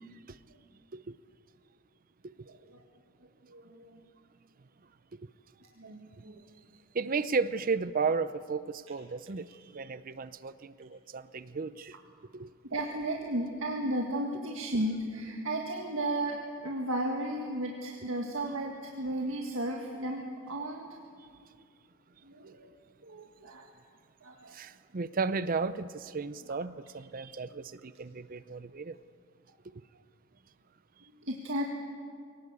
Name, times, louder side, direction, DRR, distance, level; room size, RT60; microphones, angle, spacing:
voice 1, 2.5-2.8 3.4-4.0 5.6-6.4 12.6-20.9 22.2-22.7 23.0-23.7 24.2-24.5 31.2-31.6, right 1 dB, 70° right, 1 dB, 1.9 m, -34 dB
voice 2, 6.9-11.9 12.3-12.5 24.5-28.9, right 4 dB, 40° right, 15 dB, 0.5 m, -34 dB
23.0 x 18.5 x 8.2 m, 2.1 s
head